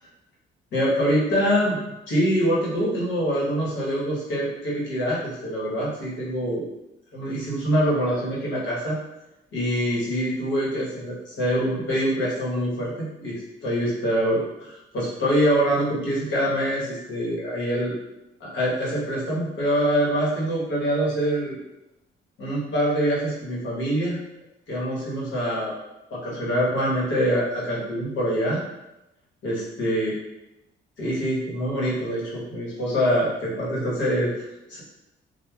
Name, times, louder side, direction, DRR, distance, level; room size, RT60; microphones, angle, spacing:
voice 1, 0.7-1.8 2.1-6.7 7.1-9.0 9.5-17.9 18.4-21.6 22.4-24.2 24.7-25.8 26.1-28.6 29.4-30.1 31.0-34.8, equal, 70° left, -6 dB, 1.1 m, -25 dB
3.0 x 2.2 x 2.3 m, 0.92 s
cardioid pair, 90°, 20 cm